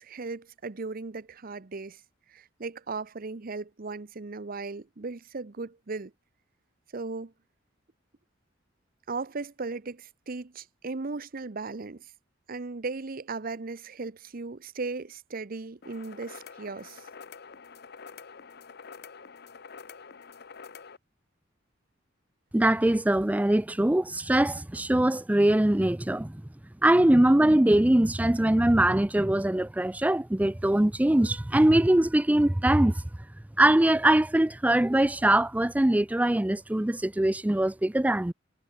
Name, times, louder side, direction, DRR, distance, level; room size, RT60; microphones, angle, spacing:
voice 1, 0.0-2.0 2.3-6.1 6.9-7.3 9.1-12.1 12.5-17.0, right 3 dB, 50° right, 0.8 m, -37 dB
sound 1, 15.8-21.0, left 5 dB, 55° left, 0.9 m, -47 dB
voice 2, 22.5-26.4 26.8-33.0 33.6-38.3, right 1 dB, 10° right, 0.4 m, -22 dB
head